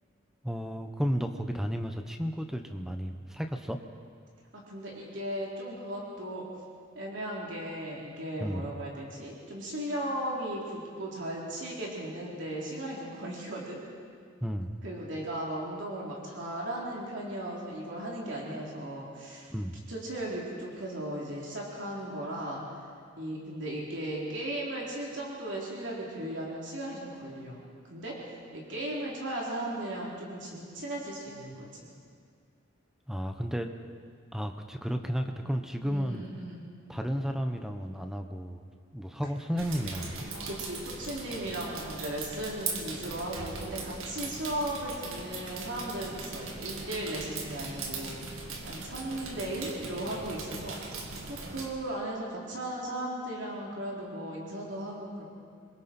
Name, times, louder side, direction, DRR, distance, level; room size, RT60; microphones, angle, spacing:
voice 1, 0.4-3.8 8.4-8.7 14.4-14.7 19.5-19.8 33.1-33.7 34.3-36.2 36.9-38.7 38.9-40.3, equal, ahead, 5 dB, 1.0 m, -33 dB
voice 2, 4.5-6.5 6.9-13.8 14.8-19.5 19.9-22.6 23.2-27.6 27.9-31.9 35.8-36.7 40.5-48.1 48.6-50.8 51.2-55.2, right 1 dB, 60° right, -4 dB, 3.5 m, -36 dB
sound 1, 39.6-51.7, right 3 dB, 85° right, 2.3 m, -39 dB
26.5 x 22.0 x 4.5 m, 2.1 s
head